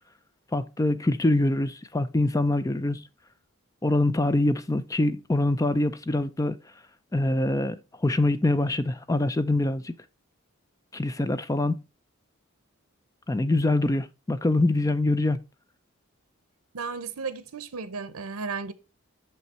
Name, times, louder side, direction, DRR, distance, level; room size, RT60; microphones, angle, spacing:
voice 1, 0.5-3.0 3.8-6.6 7.1-9.9 10.9-11.8 13.3-15.4, left 2 dB, 15° left, 0.4 m, -24 dB
voice 2, 16.7-18.7, right 4 dB, 90° right, 0.8 m, -34 dB
6.7 x 5.5 x 4.3 m
head